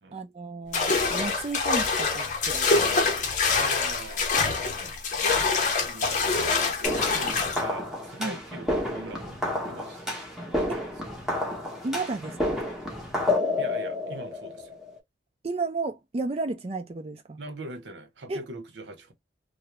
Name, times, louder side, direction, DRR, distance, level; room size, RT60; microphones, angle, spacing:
voice 1, 0.1-3.0 8.2-8.4 10.7-10.9 11.8-12.6 15.4-17.4 18.3-18.4, right 3 dB, 35° right, 0.4 m, -33 dB
sound 1, 0.7-7.6, left 4 dB, 45° left, 0.6 m, -25 dB
voice 2, 3.6-4.3 4.8-6.2 6.4-10.2 10.5-10.6 13.6-14.8 17.4-19.1, right 2 dB, 85° right, 0.7 m, -42 dB
sound 2, 6.8-15.0, left 2 dB, ahead, 0.7 m, -30 dB
2.3 x 2.0 x 2.8 m
head